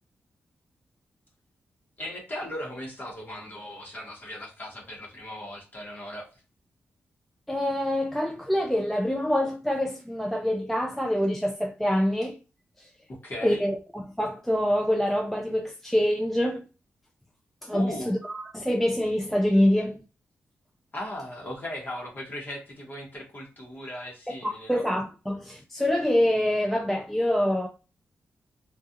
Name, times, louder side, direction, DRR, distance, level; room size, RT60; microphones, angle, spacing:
voice 1, 2.0-6.3 13.1-13.6 17.7-18.1 20.9-24.8, left 1 dB, 40° left, 1.0 m, -38 dB
voice 2, 7.5-12.4 12.8-12.9 13.4-16.7 17.6-20.0 24.3-27.7, left 1 dB, 5° left, 0.3 m, -25 dB
2.3 x 2.3 x 2.7 m
cardioid pair, 80°, 5 cm